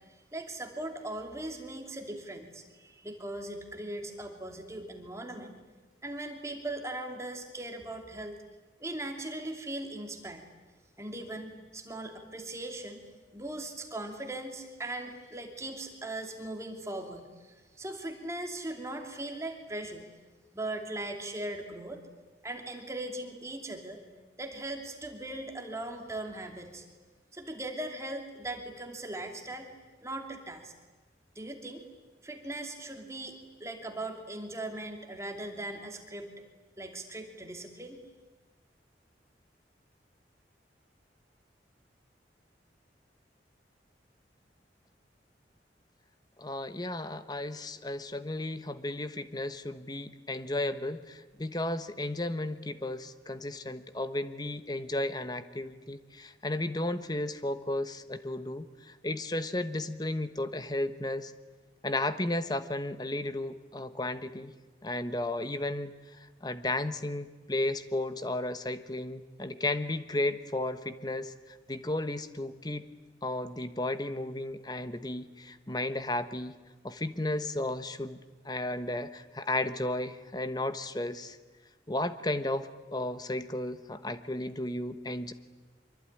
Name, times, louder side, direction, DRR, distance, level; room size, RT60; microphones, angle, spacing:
voice 1, 0.1-5.6 6.0-8.4 8.8-10.4 11.0-13.0 13.3-20.1 20.5-22.1 22.4-24.0 24.4-26.8 27.3-29.7 30.0-30.7 31.3-31.9 32.2-36.3 36.8-38.0, right 1 dB, 15° right, 3 dB, 2.8 m, -39 dB
voice 2, 46.4-61.3 61.8-64.5 64.8-65.9 66.4-72.8 73.2-76.5 76.8-78.2 78.4-81.4 81.9-85.3, left 1 dB, 25° left, 11 dB, 1.2 m, -34 dB
25.0 x 23.5 x 9.9 m, 1.3 s
head